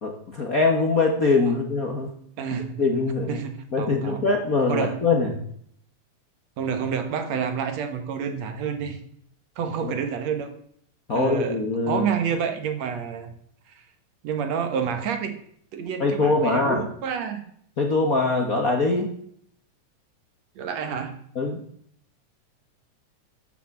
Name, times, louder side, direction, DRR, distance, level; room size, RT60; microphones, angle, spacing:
voice 1, 0.0-2.1 2.8-3.4 3.7-5.3 9.8-10.0 11.1-12.1 16.0-16.8 17.8-19.1 21.3-21.6, left 3 dB, 45° left, 2 dB, 1.2 m, -23 dB
voice 2, 2.4-2.8 3.3-4.2 4.7-5.0 6.6-9.0 9.6-10.5 11.1-11.6 11.9-13.3 14.2-15.4 15.7-17.5 20.6-21.2, right 7 dB, 65° right, 7 dB, 2.4 m, -28 dB
13.0 x 7.1 x 7.3 m, 0.67 s
omnidirectional pair, 3.3 m